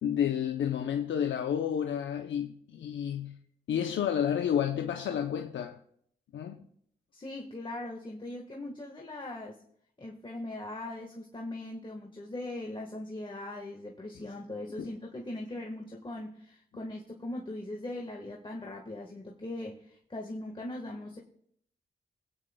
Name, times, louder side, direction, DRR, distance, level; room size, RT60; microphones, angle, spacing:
voice 1, 0.0-3.4 3.7-5.8 6.3-6.7 14.8-14.9, left 9 dB, 80° left, 0.6 m, -30 dB
voice 2, 7.1-9.6 10.0-21.2, left 1 dB, 25° left, 1.4 m, -40 dB
22.0 x 9.1 x 2.2 m
cardioid pair, 65°, 19 cm